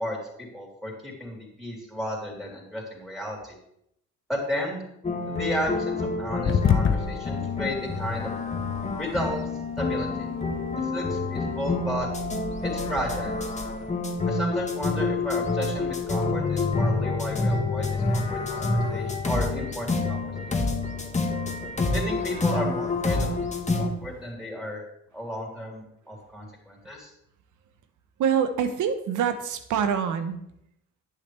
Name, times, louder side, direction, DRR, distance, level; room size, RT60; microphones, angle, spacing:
voice 1, 0.0-3.6 4.3-4.8 5.3-8.3 9.0-9.4 9.8-10.3 10.8-12.1 12.6-13.3 14.3-20.5 21.9-23.3 23.8-24.8 25.1-27.1, equal, ahead, -1 dB, 3.6 m, -33 dB
sound 1, 5.0-23.9, left 3 dB, 25° left, 1.4 m, -28 dB
sound 2, 6.4-24.3, left 7 dB, 40° left, 0.8 m, -35 dB
sound 3, 16.2-21.7, left 6 dB, 60° left, 1.6 m, -33 dB
voice 2, 28.2-30.4, right 7 dB, 80° right, 9 dB, 1.1 m, -25 dB
10.5 x 8.5 x 3.4 m, 0.75 s
cardioid pair, 90°, 30 cm